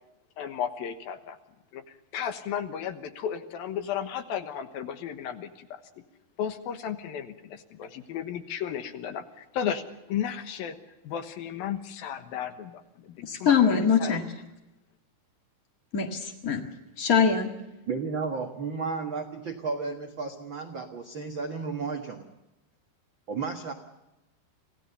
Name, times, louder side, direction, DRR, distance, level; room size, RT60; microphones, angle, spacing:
voice 1, 0.4-1.4 1.7-5.8 6.4-10.8 11.0-14.2, left 8 dB, 70° left, 9 dB, 2.9 m, -34 dB
voice 2, 13.2-14.2 15.9-16.6 17.0-17.5, left 6 dB, 50° left, 3 dB, 1.0 m, -23 dB
voice 3, 17.9-22.3 23.3-23.7, right 4 dB, 60° right, 4 dB, 1.2 m, -33 dB
27.0 x 16.5 x 6.8 m, 0.97 s
omnidirectional pair, 4.7 m